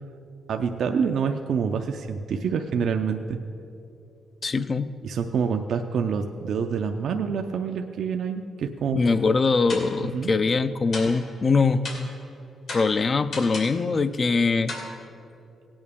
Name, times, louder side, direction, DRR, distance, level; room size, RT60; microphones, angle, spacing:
voice 1, 0.5-3.4 5.0-9.1 10.0-10.3, right 6 dB, 70° right, 5 dB, 0.5 m, -27 dB
voice 2, 4.4-4.9 8.9-12.1 12.7-14.7, left 4 dB, 40° left, 13 dB, 0.4 m, -22 dB
sound 1, 9.0-9.3 9.7-10.1 10.9-11.4 11.8-12.2 12.7-13.8 14.7-14.9, left 2 dB, 65° left, 2.5 m, -36 dB
17.0 x 8.8 x 3.6 m, 2.7 s
cardioid pair, 95°, 0 cm